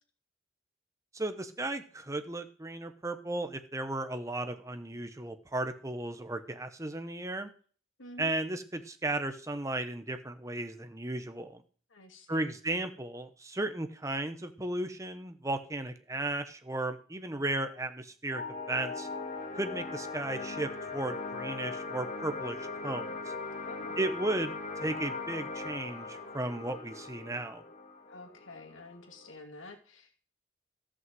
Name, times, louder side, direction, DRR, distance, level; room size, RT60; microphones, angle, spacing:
voice 1, 1.1-7.5 8.2-11.6 12.3-19.1 19.5-23.3 24.0-27.6, right 2 dB, 15° right, 8 dB, 0.9 m, -35 dB
voice 2, 8.0-8.4 11.9-12.5 23.6-24.0 28.1-30.2, left 2 dB, 85° left, 3 dB, 2.6 m, -49 dB
sound 1, 18.3-29.4, left 3 dB, 40° left, 2.2 m, -40 dB
14.0 x 6.2 x 7.7 m, 0.43 s
head